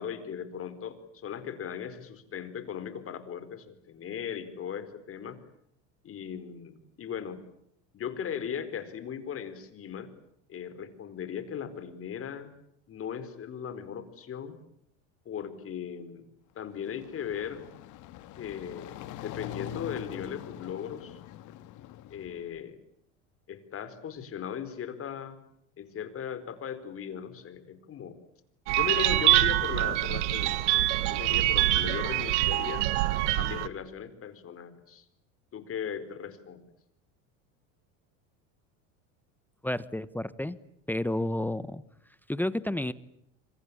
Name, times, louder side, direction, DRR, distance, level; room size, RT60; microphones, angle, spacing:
voice 1, 0.0-5.4 6.0-7.4 7.9-10.1 10.5-12.5 12.9-14.6 15.2-16.2 16.5-17.7 18.4-21.2 22.1-22.8 23.5-25.4 25.8-28.2 28.7-32.9 33.3-35.0 35.5-36.6, left 8 dB, 40° left, 12 dB, 4.6 m, -38 dB
sound 1, 16.6-22.6, left 13 dB, 60° left, 2.2 m, -44 dB
sound 2, 28.7-33.7, right 16 dB, 85° right, 1.7 m, -25 dB
voice 2, 39.6-40.6 40.9-41.8 42.3-42.9, left 1 dB, 5° left, 16 dB, 1.1 m, -30 dB
27.5 x 25.0 x 8.5 m, 0.74 s
supercardioid pair, 105°, 35 cm